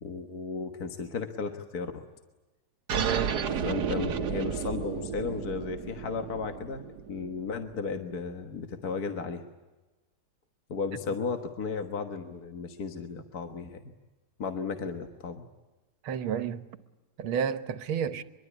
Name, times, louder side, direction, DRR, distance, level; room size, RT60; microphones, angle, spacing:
voice 1, 0.0-2.1 3.6-9.4 10.7-13.9 14.4-15.5, left 5 dB, 50° left, 1.8 m, -34 dB
sound 1, 2.9-8.0, right 7 dB, 55° right, 1.6 m, -33 dB
voice 2, 3.0-3.4 16.0-16.7 17.2-18.2, right 8 dB, 80° right, 1.9 m, -31 dB
24.0 x 23.0 x 9.8 m
omnidirectional pair, 2.2 m